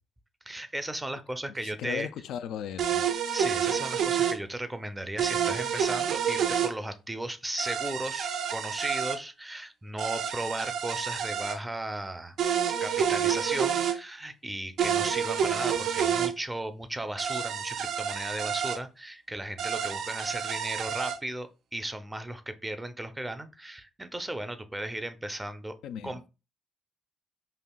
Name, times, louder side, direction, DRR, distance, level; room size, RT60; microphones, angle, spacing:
voice 1, 0.5-2.1 3.3-12.3 12.8-25.7 26.0-26.3, right 1 dB, 15° right, 0.5 m, -36 dB
voice 2, 1.6-3.0 25.8-26.3, left 9 dB, 85° left, 0.3 m, -37 dB
sound 1, 2.8-4.4 5.2-6.7 7.6-9.2 10.0-11.6 12.4-14.0 14.8-16.3 17.2-18.8 19.6-21.2, right 8 dB, 70° right, 0.4 m, -28 dB
5.4 x 2.4 x 2.2 m
cardioid pair, 90°, 0 cm